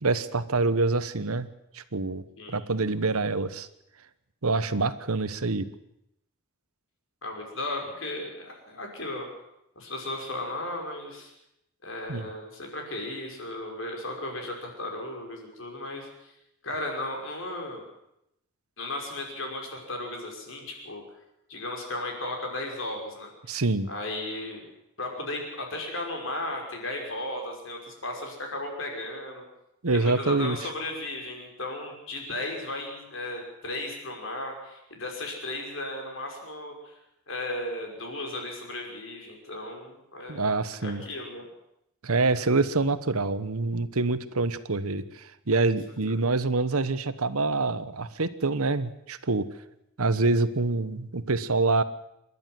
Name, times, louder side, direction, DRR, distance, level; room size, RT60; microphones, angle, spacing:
voice 1, 0.0-1.5 1.7-3.7 4.4-5.7 12.1-12.3 23.5-23.9 29.8-30.6 40.3-41.0 42.0-49.5 50.0-51.8, right 3 dB, 75° right, 14 dB, 1.2 m, -26 dB
voice 2, 7.2-9.3 9.8-11.3 11.8-16.3 16.6-17.8 18.8-21.0 21.5-24.7 25.0-29.4 29.9-37.0 37.3-40.5 40.8-41.5 46.1-46.2, left 2 dB, 60° left, 2 dB, 5.4 m, -35 dB
28.0 x 12.0 x 7.8 m, 0.81 s
head